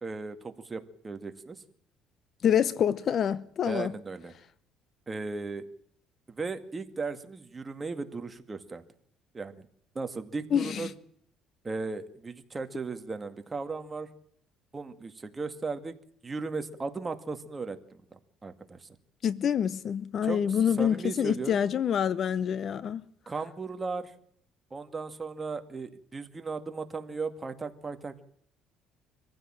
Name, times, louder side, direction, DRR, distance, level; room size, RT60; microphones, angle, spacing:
voice 1, 0.0-1.6 3.7-4.3 5.1-5.7 6.3-8.8 9.3-9.6 10.0-10.9 11.6-14.1 14.7-15.9 16.2-18.9 20.2-21.6 23.3-24.1 24.7-28.2, right 4 dB, 20° right, 2.1 m, -36 dB
voice 2, 2.4-3.9 10.5-10.9 19.2-23.0, left 8 dB, 45° left, 0.8 m, -26 dB
24.5 x 15.5 x 9.0 m
cardioid pair, 125°, 0 cm